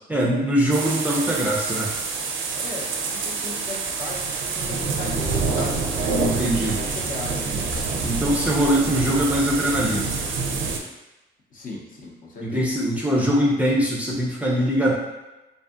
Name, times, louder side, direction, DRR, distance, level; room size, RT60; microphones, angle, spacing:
voice 1, 0.1-1.9 6.2-6.8 8.0-10.2 12.4-14.9, equal, 5° right, -4 dB, 0.4 m, -22 dB
sound 1, 0.7-10.8, right 4 dB, 75° right, 0.4 m, -27 dB
voice 2, 2.5-7.7 11.5-12.7, left 2 dB, 45° left, -3 dB, 0.7 m, -37 dB
2.6 x 2.4 x 2.4 m, 1.0 s
cardioid pair, 90°, 20 cm